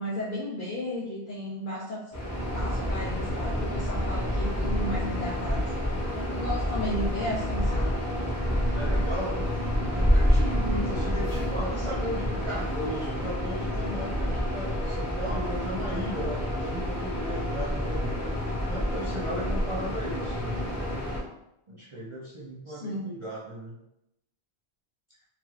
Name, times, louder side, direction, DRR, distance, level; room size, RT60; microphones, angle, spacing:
voice 1, 0.0-2.0 2.5-5.6 5.9-6.0 6.3-8.0 22.7-23.0, left 1 dB, 55° left, -5 dB, 0.6 m, -34 dB
sound 1, 2.1-21.2, equal, 15° left, 0.8 m, -28 dB
voice 2, 8.7-9.5 9.9-18.3 18.7-20.6 21.7-23.8, equal, 55° right, -5 dB, 0.3 m, -36 dB
2.9 x 2.4 x 3.1 m, 0.84 s
omnidirectional pair, 1.1 m